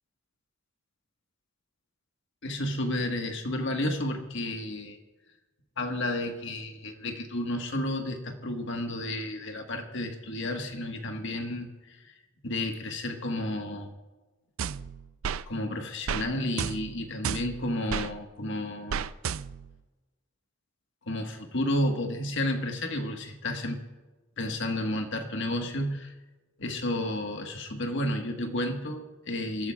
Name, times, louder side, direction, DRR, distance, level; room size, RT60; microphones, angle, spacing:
voice 1, 2.4-5.0 5.8-12.1 12.4-13.9 15.5-19.1 21.0-23.8 24.4-26.1 26.6-29.7, left 1 dB, 60° left, 3 dB, 1.5 m, -31 dB
sound 1, 14.6-15.4 16.1-16.3 16.6-18.1 18.9-19.7, right 7 dB, 75° right, 0.4 m, -32 dB
28.5 x 13.5 x 2.4 m, 1.2 s
head